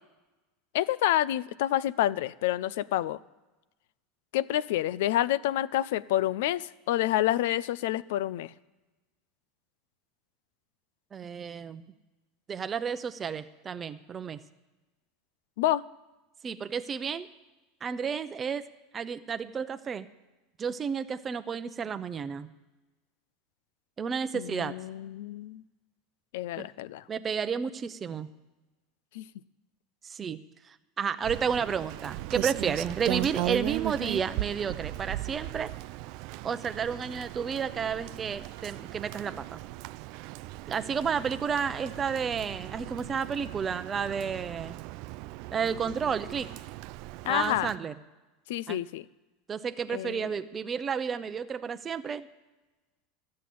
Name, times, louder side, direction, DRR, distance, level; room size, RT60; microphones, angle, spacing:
voice 1, 0.7-3.2 4.3-8.5 15.6-15.8 24.3-25.6 26.3-27.0 29.1-29.3 47.2-47.7 48.5-49.1 49.9-50.3, left 13 dB, 75° left, 18 dB, 0.5 m, -28 dB
voice 2, 11.1-11.8 12.5-14.4 16.4-17.3 17.8-18.7 18.9-20.1 20.6-22.5 24.0-24.7 26.6-26.7 27.1-28.3 30.0-30.4 30.6-35.7 36.4-39.6 40.7-44.8 45.5-46.5 47.3-47.9 48.7-48.8 49.5-52.3, right 6 dB, 30° right, 10 dB, 0.7 m, -31 dB
Rain, 31.2-47.8, right 18 dB, 60° right, 0.3 m, -37 dB
13.0 x 7.6 x 8.5 m, 1.1 s
supercardioid pair, 105°, 0 cm